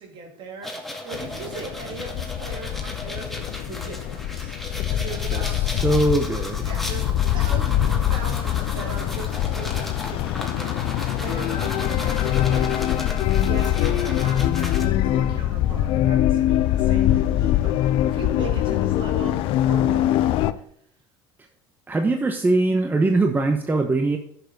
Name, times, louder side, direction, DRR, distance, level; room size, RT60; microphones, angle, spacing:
voice 1, 0.0-4.6 4.8-5.8 6.6-20.6, right 4 dB, 50° right, 1 dB, 3.3 m, -39 dB
sound 1, 0.6-14.8, left 1 dB, ahead, 2.3 m, -36 dB
sound 2, 1.1-20.5, left 12 dB, 60° left, 0.6 m, -23 dB
voice 2, 5.8-6.7 21.9-24.2, right 2 dB, 15° right, 5 dB, 1.1 m, -21 dB
10.5 x 7.0 x 4.1 m, 0.68 s
hypercardioid pair, 75°, 11 cm